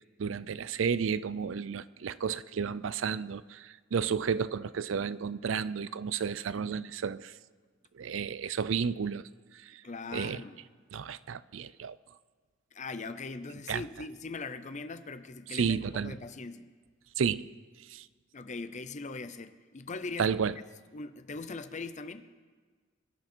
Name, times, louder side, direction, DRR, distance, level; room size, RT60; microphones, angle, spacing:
voice 1, 0.2-7.3 7.9-9.2 9.6-9.8 10.1-10.4 10.9-12.0 13.7-13.8 15.5-16.2 17.2-17.4 17.9-18.1 20.2-20.5, right 6 dB, 85° right, 0.4 m, -32 dB
voice 2, 9.8-10.6 12.7-16.7 18.3-20.3 20.9-22.2, left 3 dB, 40° left, 0.7 m, -40 dB
22.5 x 11.5 x 4.5 m
head